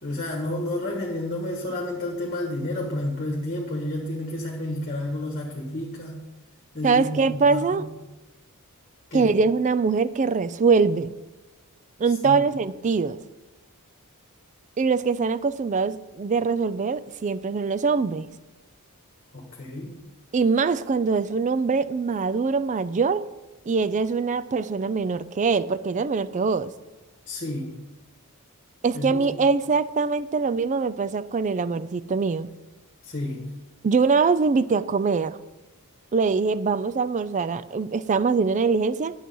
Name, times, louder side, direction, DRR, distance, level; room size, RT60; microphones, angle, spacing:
voice 1, 0.0-6.3 6.7-7.8 9.1-9.3 12.2-12.4 19.3-20.0 27.3-27.8 28.9-29.5 33.0-33.6, left 1 dB, 40° left, -1 dB, 1.5 m, -31 dB
voice 2, 6.8-7.8 9.1-11.1 12.0-13.2 14.8-18.3 20.3-23.2 23.7-26.7 28.8-32.5 33.8-35.4 36.1-39.1, right 4 dB, 35° right, 16 dB, 0.4 m, -23 dB
11.0 x 7.5 x 5.4 m, 1.1 s
head